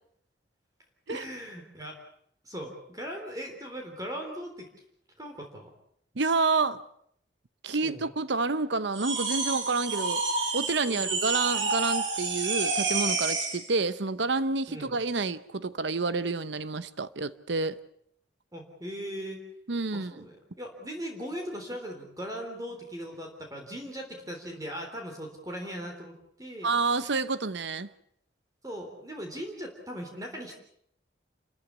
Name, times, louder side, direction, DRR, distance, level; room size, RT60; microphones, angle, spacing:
voice 1, 1.1-2.0 2.4-4.7 5.2-5.7 7.8-8.1 10.9-11.3 14.7-15.0 18.5-19.4 19.9-27.1 28.6-30.6, equal, 20° right, 3.6 m, -39 dB
voice 2, 6.2-6.8 7.6-10.2 10.5-17.8 19.7-20.1 26.6-27.9, right 3 dB, 70° right, 0.9 m, -29 dB
sound 1, 8.9-13.7, right 4 dB, 90° right, 5.6 m, -29 dB
28.5 x 14.5 x 8.4 m
head